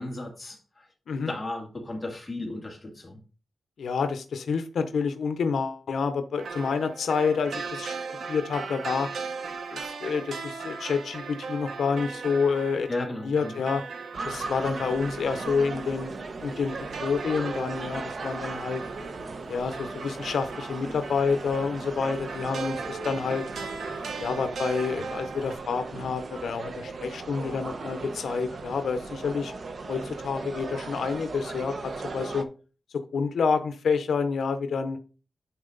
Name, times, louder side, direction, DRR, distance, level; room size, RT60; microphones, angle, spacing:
voice 1, 0.0-0.9 1.3-3.2 12.9-13.6, left 2 dB, 15° left, 0 dB, 2.3 m, -35 dB
voice 2, 3.8-7.9 8.3-9.1 9.7-12.9 13.2-13.8 14.3-16.1 16.4-16.7 17.0-18.8 19.5-23.4 24.2-29.5 29.9-32.5 32.9-35.0, left 5 dB, 85° left, 9 dB, 0.7 m, -28 dB
sound 1, 6.4-25.6, right 5 dB, 85° right, 1.1 m, -38 dB
sound 2, 14.1-32.4, right 3 dB, 50° right, 0.8 m, -38 dB
10.0 x 4.4 x 3.9 m, 0.36 s
wide cardioid pair, 145°, 0 cm